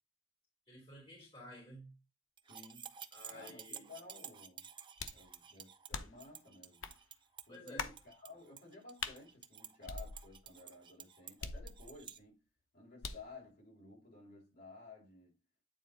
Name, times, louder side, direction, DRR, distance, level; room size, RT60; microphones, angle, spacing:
voice 1, 0.7-2.0 3.1-3.9 7.5-7.9, left 1 dB, 30° left, 3.4 m, -53 dB
sound 1, 2.4-12.2, right 8 dB, 25° right, 0.5 m, -52 dB
voice 2, 2.5-2.9 3.3-4.7 5.1-6.9 7.5-12.4 12.7-15.3, left 3 dB, 55° left, 4.5 m, -55 dB
sound 2, 5.0-5.3 5.9-6.3 6.8-7.0 7.8-8.0 9.0-9.2 9.9-10.5 11.4-12.1 13.0-13.3, left 5 dB, 75° left, 0.8 m, -43 dB
9.3 x 4.2 x 4.0 m
head